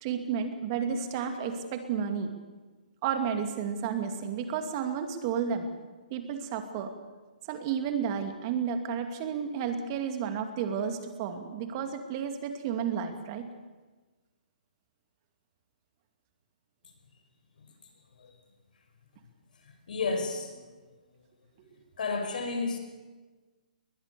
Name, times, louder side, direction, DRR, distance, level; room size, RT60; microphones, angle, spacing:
voice 1, 0.0-2.3 3.0-5.7 6.1-6.9 7.5-13.5 21.6-21.7, right 7 dB, 30° right, 7 dB, 2.5 m, -32 dB
voice 2, 17.6-17.9 18.2-18.4 19.6-20.6 22.0-22.8, left 4 dB, 65° left, 5 dB, 5.6 m, -32 dB
21.0 x 21.0 x 7.0 m, 1.3 s
hypercardioid pair, 155°, 5 cm